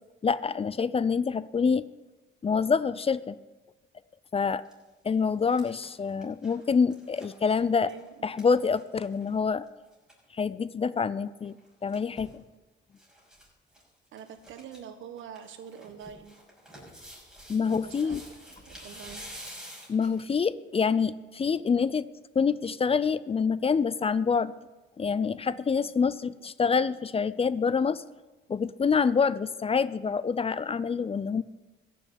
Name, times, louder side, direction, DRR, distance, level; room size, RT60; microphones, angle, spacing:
voice 1, 0.2-1.9 2.4-3.4 4.3-4.6 5.0-7.9 8.2-9.6 10.3-11.6 11.8-12.4 17.5-18.2 19.9-22.1 22.4-24.5 25.0-28.0 28.5-31.4, left 5 dB, 30° left, 17 dB, 0.5 m, -26 dB
sound 1, 4.6-4.7 5.1-9.3 9.7-9.8 9.9-10.2 11.4-12.4 13.0-13.5 13.7-13.8 14.2-14.8 15.2-20.4 20.9-21.0, equal, 5° right, 5.8 m, -48 dB
voice 2, 7.8-8.3 14.1-16.4 17.6-18.4 18.7-19.2 26.3-26.4, right 8 dB, 75° right, 9 dB, 1.4 m, -45 dB
14.5 x 6.9 x 8.2 m, 1.1 s
cardioid pair, 90°, 20 cm